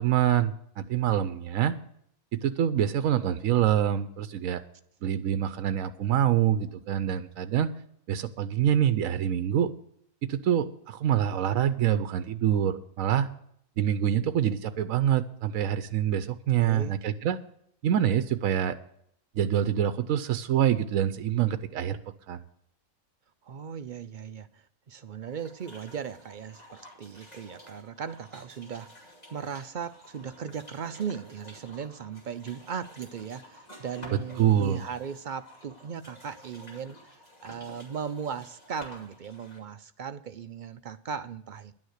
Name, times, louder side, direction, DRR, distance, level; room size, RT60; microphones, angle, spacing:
voice 1, 0.0-1.8 2.4-4.6 5.0-7.7 8.1-9.7 10.2-13.3 13.8-17.4 17.8-18.8 19.4-22.0 22.3-22.4 34.4-34.8, right 10 dB, 75° right, 11 dB, 1.1 m, -26 dB
voice 2, 16.6-16.9 23.4-37.1 37.4-41.7, right 7 dB, 60° right, 11 dB, 0.5 m, -38 dB
sound 1, 25.3-39.6, equal, 30° left, 2.6 m, -51 dB
10.5 x 9.6 x 6.5 m, 0.68 s
omnidirectional pair, 1.4 m